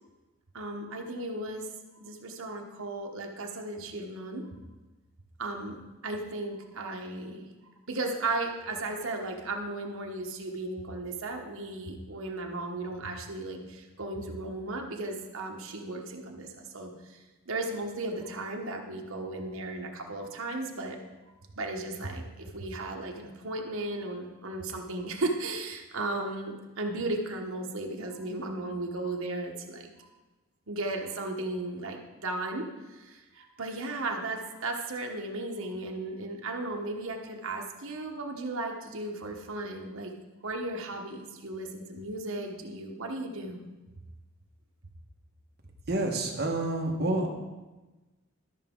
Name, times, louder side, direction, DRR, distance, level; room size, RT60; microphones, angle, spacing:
voice 1, 0.5-4.5 5.4-7.5 7.9-21.0 21.5-30.1 30.7-40.1 40.4-43.6, right 2 dB, 65° right, 2 dB, 1.2 m, -35 dB
voice 2, 45.9-47.3, right 2 dB, 45° right, 1 dB, 1.3 m, -28 dB
13.0 x 5.9 x 3.8 m, 1.2 s
head